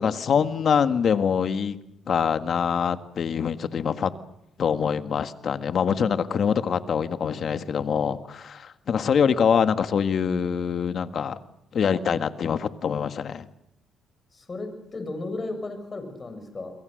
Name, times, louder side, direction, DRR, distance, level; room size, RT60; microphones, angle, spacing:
voice 1, 0.0-1.8 2.1-4.1 4.6-11.4 11.7-13.5, left 7 dB, 55° left, 10 dB, 1.7 m, -24 dB
voice 2, 14.3-16.7, left 2 dB, 30° left, 7 dB, 7.0 m, -35 dB
28.5 x 23.0 x 6.6 m, 0.82 s
cardioid pair, 90°, 0 cm